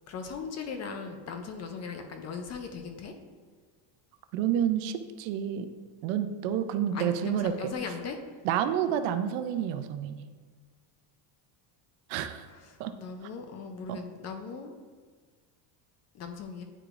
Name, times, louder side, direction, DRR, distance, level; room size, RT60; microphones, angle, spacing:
voice 1, 0.1-3.1 6.9-8.2 12.5-14.8 16.1-16.6, left 5 dB, 35° left, 6 dB, 0.5 m, -39 dB
voice 2, 4.3-5.7 6.0-7.7 8.4-10.3 12.1-12.4 12.8-12.9 13.9-14.0, right 9 dB, 75° right, 10 dB, 0.6 m, -29 dB
9.8 x 4.7 x 2.5 m, 1.5 s
cardioid pair, 155°, 47 cm